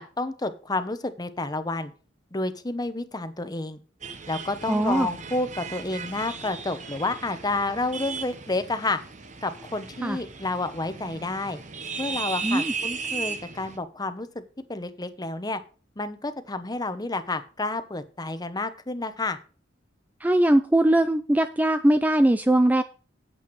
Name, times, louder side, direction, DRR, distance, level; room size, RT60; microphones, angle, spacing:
voice 1, 0.0-1.9 2.3-3.8 4.3-9.0 9.4-11.6 12.0-14.4 14.7-15.6 16.0-19.4, left 2 dB, 20° left, 11 dB, 0.9 m, -30 dB
sound 1, 4.0-13.8, right 5 dB, 40° right, 1.1 m, -36 dB
voice 2, 4.7-5.1 10.0-10.2 12.4-12.7 20.2-22.8, right 1 dB, 10° right, 10 dB, 0.4 m, -21 dB
8.8 x 7.9 x 4.7 m, 0.36 s
head